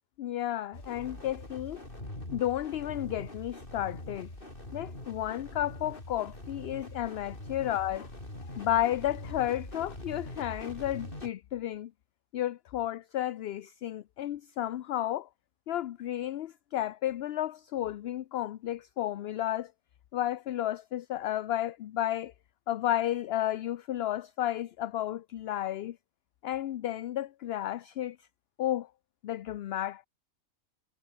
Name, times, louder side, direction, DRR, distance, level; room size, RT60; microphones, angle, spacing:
voice 1, 0.2-1.8 2.3-4.3 4.7-8.1 8.4-11.9 12.3-15.3 15.7-19.7 20.1-22.3 22.7-26.0 26.4-28.2 28.6-28.9 29.2-30.1, left 12 dB, 60° left, 0.7 m, -32 dB
sound 1, 0.7-11.3, left 1 dB, 40° left, 6.4 m, -43 dB
omnidirectional pair, 1.3 m